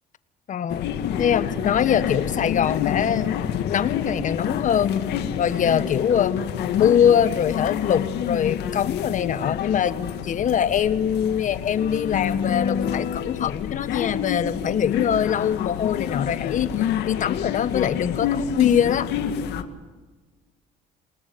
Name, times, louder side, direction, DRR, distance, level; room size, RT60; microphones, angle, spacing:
voice 1, 0.5-0.9 1.2-3.3 3.7-5.0 5.4-6.4 6.7-16.8 17.0-19.1, left 8 dB, 50° left, 13 dB, 1.5 m, -23 dB
sound 1, 0.7-19.6, left 9 dB, 80° left, 2.0 m, -28 dB
28.5 x 19.5 x 8.0 m, 1.3 s
cardioid pair, 110°, 17 cm